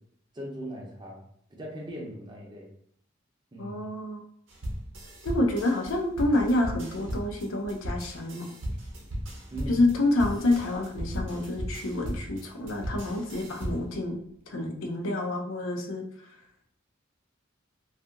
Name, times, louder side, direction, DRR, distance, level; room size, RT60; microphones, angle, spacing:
voice 1, 0.3-1.2 1.5-2.7 3.5-3.8 9.5-9.8, right 1 dB, 20° right, -1 dB, 0.6 m, -39 dB
voice 2, 3.6-4.2 5.2-8.5 9.7-14.2 14.5-16.0, left 2 dB, 85° left, 2 dB, 0.5 m, -28 dB
sound 1, 4.5-14.0, equal, 70° right, 0.6 m, -36 dB
2.6 x 2.4 x 2.4 m, 0.67 s
head